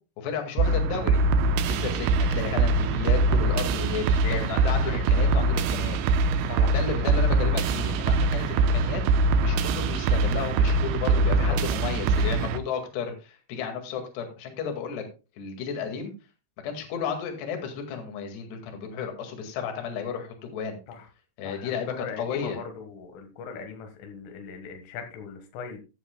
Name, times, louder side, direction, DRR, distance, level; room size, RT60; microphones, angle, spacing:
voice 1, 0.2-1.2 1.6-6.0 6.7-9.0 9.4-15.0 15.4-16.1 16.6-20.8 21.4-22.6, left 6 dB, 65° left, 4 dB, 3.9 m, -33 dB
sound 1, 0.6-12.6, right 3 dB, 80° right, 3.0 m, -23 dB
voice 2, 11.2-11.6 20.9-21.0 21.4-25.8, left 6 dB, 90° left, 5 dB, 4.1 m, -39 dB
14.5 x 11.0 x 2.2 m, 0.31 s
omnidirectional pair, 5.5 m